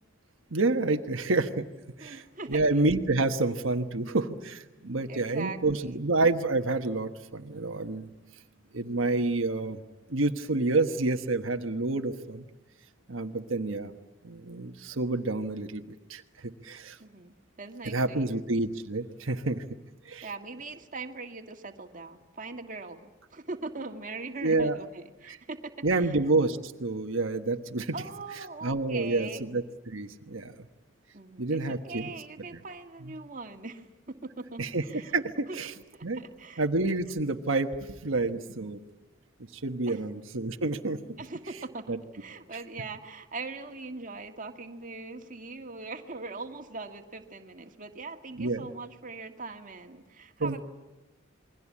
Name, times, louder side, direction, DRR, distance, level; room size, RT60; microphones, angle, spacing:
voice 1, 0.5-1.6 2.0-2.2 2.5-8.1 8.7-9.8 10.1-12.4 13.1-13.9 14.2-17.0 17.8-19.6 20.0-20.3 24.4-24.8 25.3-25.4 25.8-27.9 28.6-30.5 31.4-32.1 34.6-35.7 36.0-36.2 36.6-38.8 39.5-41.0 41.9-42.0 48.4-48.7 50.4-50.6, right 2 dB, 75° right, 6 dB, 1.3 m, -28 dB
voice 2, 2.0-2.6 5.1-6.0 17.0-18.4 20.2-26.2 27.9-29.5 31.1-35.1 35.5-35.6 35.9-36.6 39.9-40.1 41.2-50.6, right 3 dB, 40° right, 4 dB, 1.9 m, -41 dB
28.0 x 22.5 x 8.6 m, 1.1 s
head